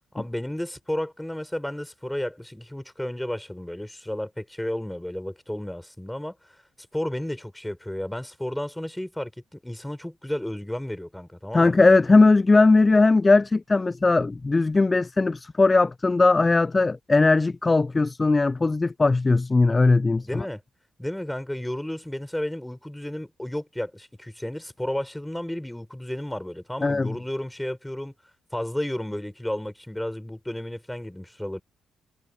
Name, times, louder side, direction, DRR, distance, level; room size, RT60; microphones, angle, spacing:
voice 1, 0.1-6.3 6.9-11.8 20.1-20.6 21.0-28.1 28.5-31.6, left 1 dB, 5° left, 5.8 m, -32 dB
voice 2, 11.5-20.4 26.8-27.2, left 3 dB, 25° left, 0.4 m, -19 dB
figure-of-eight pair, 40°, 0 cm